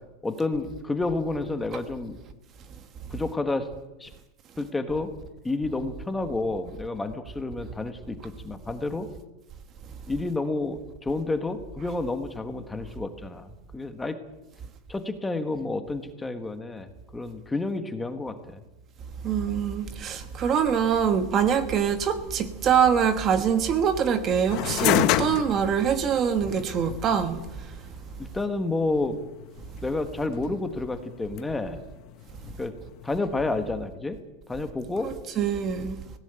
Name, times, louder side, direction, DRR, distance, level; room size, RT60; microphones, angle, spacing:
voice 1, 0.2-2.2 3.1-3.7 4.0-4.1 4.6-5.1 5.4-9.1 10.1-14.2 14.9-16.9 17.1-18.6 28.2-29.2 29.8-31.8 32.6-32.7 33.0-34.2 34.5-35.1, left 2 dB, 5° left, 1.3 m, -30 dB
voice 2, 19.2-27.4 35.0-36.0, right 7 dB, 25° right, 1.2 m, -24 dB
sound 1, 24.5-33.7, left 14 dB, 40° left, 0.9 m, -31 dB
18.0 x 17.0 x 8.9 m
supercardioid pair, 165°, 0 cm